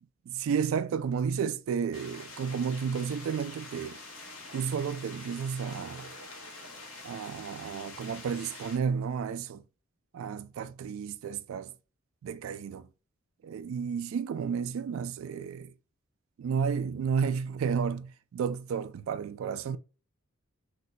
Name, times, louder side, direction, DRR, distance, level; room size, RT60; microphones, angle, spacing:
voice 1, 0.3-4.0 4.5-6.1 7.0-9.6 10.1-11.7 12.2-12.9 13.4-15.7 16.4-19.8, right 6 dB, 70° right, 0.3 m, -32 dB
sound 1, 1.9-8.8, left 2 dB, 70° left, 1.0 m, -46 dB
2.7 x 2.2 x 3.8 m
head